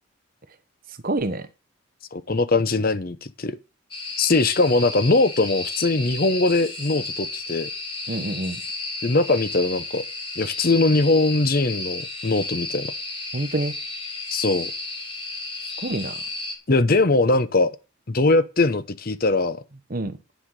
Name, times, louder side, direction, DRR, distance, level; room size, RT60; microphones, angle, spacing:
voice 1, 1.0-1.5 8.1-8.6 13.3-13.7 15.8-16.2 19.9-20.2, right 2 dB, 40° right, 1.0 m, -27 dB
voice 2, 2.1-3.6 4.2-7.7 9.0-10.0 10.4-12.9 14.3-14.7 16.7-17.7 18.1-19.6, left 2 dB, 45° left, 0.8 m, -21 dB
sound 1, 3.9-16.6, left 3 dB, 25° left, 2.3 m, -33 dB
10.0 x 5.8 x 6.4 m
head